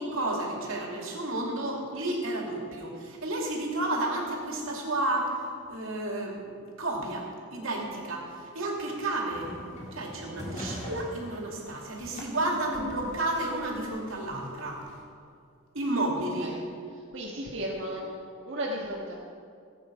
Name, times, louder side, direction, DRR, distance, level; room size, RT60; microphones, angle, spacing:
voice 1, 0.0-5.4 5.7-9.5 9.9-14.8 15.7-16.6, right 1 dB, 80° right, -1 dB, 2.5 m, -31 dB
sound 1, 9.3-15.0, equal, 35° left, 1.9 m, -43 dB
voice 2, 17.1-18.2 18.4-19.1, equal, 60° right, -5 dB, 1.4 m, -34 dB
15.5 x 8.6 x 5.1 m, 2.3 s
head